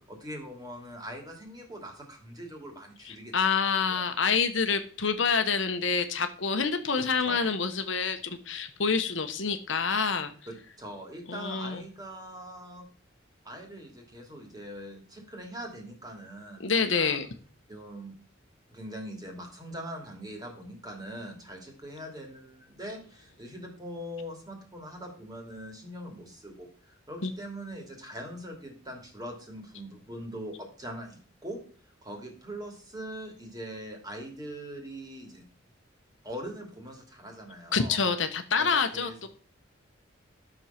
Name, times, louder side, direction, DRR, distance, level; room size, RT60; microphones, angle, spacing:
voice 1, 0.0-3.3 3.9-4.0 7.2-7.5 10.5-12.8 13.4-17.2 17.7-18.1 18.7-31.6 32.0-35.4 36.2-38.0 38.6-39.3, equal, 20° right, 2 dB, 2.7 m, -42 dB
voice 2, 3.0-10.3 11.3-11.9 16.6-17.3 27.2-27.3 37.7-39.3, left 5 dB, 65° left, 8 dB, 1.1 m, -27 dB
12.0 x 6.4 x 5.8 m, 0.43 s
head